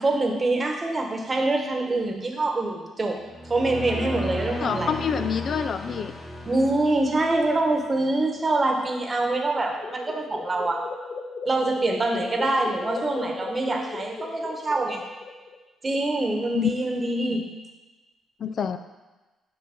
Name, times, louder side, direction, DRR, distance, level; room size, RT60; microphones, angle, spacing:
voice 1, 0.0-3.2 3.5-4.9 6.4-10.8 11.5-15.0 15.8-17.4, right 2 dB, 30° right, 2 dB, 1.1 m, -25 dB
sound 1, 3.2-7.6, left 1 dB, 20° left, 1.2 m, -34 dB
voice 2, 4.6-6.1 16.5-17.0 18.4-18.8, left 7 dB, 55° left, 9 dB, 0.3 m, -27 dB
sound 2, 9.0-15.6, left 4 dB, 40° left, 0.9 m, -38 dB
5.5 x 5.3 x 5.2 m, 1.2 s
cardioid pair, 90°, 0 cm